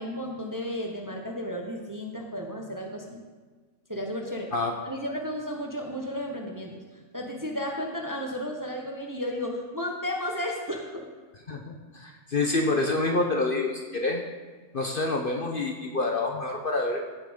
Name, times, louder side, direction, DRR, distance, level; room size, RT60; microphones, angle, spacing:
voice 1, 0.0-3.2 3.9-4.5 4.8-6.8 7.1-11.1, equal, 15° right, 1 dB, 1.0 m, -33 dB
voice 2, 11.5-14.2 14.7-17.0, left 2 dB, 45° left, 2 dB, 1.0 m, -27 dB
16.0 x 5.9 x 5.2 m, 1.4 s
omnidirectional pair, 1.5 m